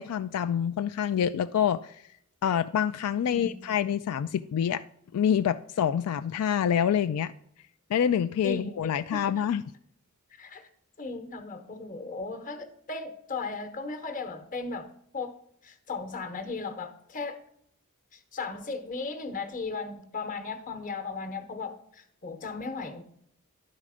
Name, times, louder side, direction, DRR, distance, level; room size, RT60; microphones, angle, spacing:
voice 1, 0.0-1.9 2.4-4.8 5.1-7.3 7.9-9.6, left 8 dB, 80° left, 11 dB, 0.3 m, -26 dB
voice 2, 8.4-9.2 10.4-10.7 11.0-15.4 15.6-17.4 18.1-23.0, left 4 dB, 35° left, 7 dB, 1.0 m, -36 dB
11.0 x 4.2 x 4.9 m, 0.71 s
head